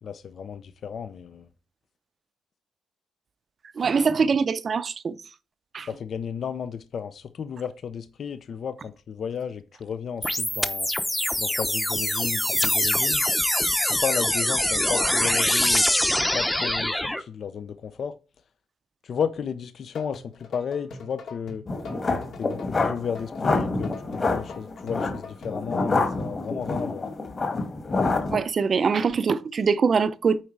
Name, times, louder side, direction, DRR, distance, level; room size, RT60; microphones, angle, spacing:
voice 1, 0.0-1.5 5.9-10.9 11.4-13.2 13.8-18.2 19.0-21.6 22.4-27.1, left 7 dB, 60° left, 0.6 m, -33 dB
voice 2, 3.8-5.2 5.7-5.9 28.3-30.4, right 5 dB, 50° right, 0.6 m, -23 dB
sound 1, 10.2-17.2, left 1 dB, 10° left, 0.8 m, -24 dB
sound 2, 19.8-25.8, left 3 dB, 80° left, 2.2 m, -43 dB
sound 3, 21.7-28.4, left 3 dB, 40° left, 2.1 m, -27 dB
8.9 x 4.3 x 4.7 m
cardioid pair, 90°, 0 cm